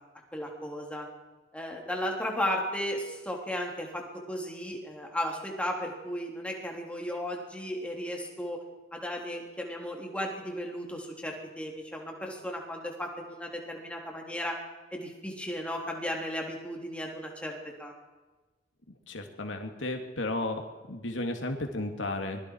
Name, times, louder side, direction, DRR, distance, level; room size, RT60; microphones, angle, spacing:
voice 1, 0.3-1.1 1.5-8.6 8.9-14.6 14.9-17.9, equal, 5° left, 0 dB, 3.6 m, -35 dB
voice 2, 19.1-20.6 20.9-22.4, left 2 dB, 90° left, 4 dB, 2.7 m, -33 dB
25.5 x 22.0 x 4.9 m, 1.2 s
head